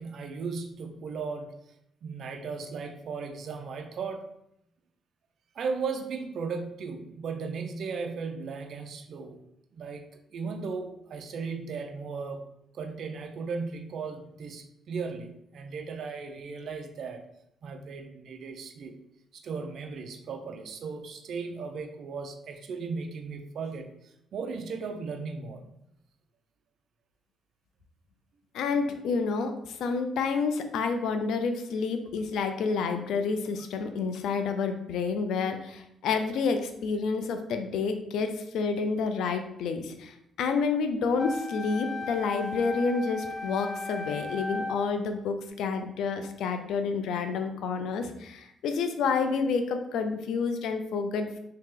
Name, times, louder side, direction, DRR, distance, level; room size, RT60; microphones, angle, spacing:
voice 1, 0.0-1.5 2.0-4.3 5.5-9.4 9.7-12.5 12.7-17.2 17.6-19.0 19.3-25.6, right 5 dB, 65° right, 5 dB, 0.4 m, -36 dB
voice 2, 28.5-51.4, left 5 dB, 80° left, 7 dB, 0.4 m, -29 dB
Wind instrument woodwind instrument, 41.2-45.0, left 3 dB, 30° left, 0.5 m, -36 dB
2.8 x 2.8 x 3.7 m, 0.79 s
cardioid pair, 90°, 0 cm